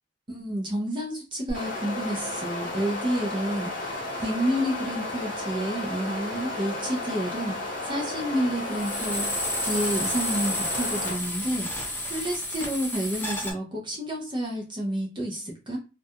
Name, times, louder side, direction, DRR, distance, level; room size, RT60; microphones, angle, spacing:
voice 1, 0.3-15.8, equal, 25° right, -2 dB, 0.4 m, -30 dB
sound 1, 1.5-11.1, left 2 dB, 50° left, 0.9 m, -33 dB
sound 2, 8.7-13.5, left 1 dB, 10° left, 0.6 m, -31 dB
2.3 x 2.2 x 2.7 m, 0.31 s
head